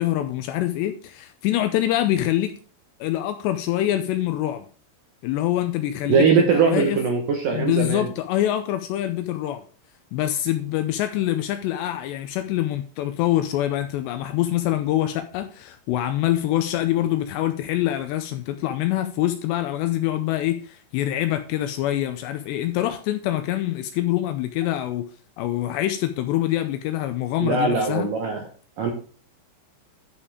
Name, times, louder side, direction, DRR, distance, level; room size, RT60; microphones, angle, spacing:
voice 1, 0.0-2.5 3.0-4.7 5.2-7.0 7.5-9.6 10.1-25.1 25.4-28.1, left 13 dB, 80° left, 2.6 m, -25 dB
voice 2, 6.1-8.1 27.4-28.4 28.8-28.9, right 5 dB, 70° right, 2.2 m, -21 dB
11.0 x 5.3 x 4.9 m
omnidirectional pair, 5.4 m